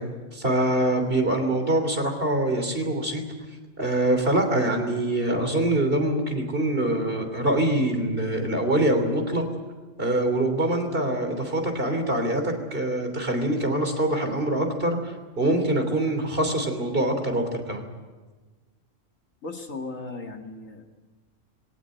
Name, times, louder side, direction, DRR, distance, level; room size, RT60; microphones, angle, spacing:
voice 1, 0.3-3.2 3.8-9.4 10.0-17.8, right 1 dB, 45° right, 5 dB, 3.5 m, -24 dB
voice 2, 19.4-20.8, left 3 dB, 85° left, 3 dB, 2.5 m, -36 dB
21.5 x 18.0 x 9.1 m, 1.3 s
omnidirectional pair, 1.3 m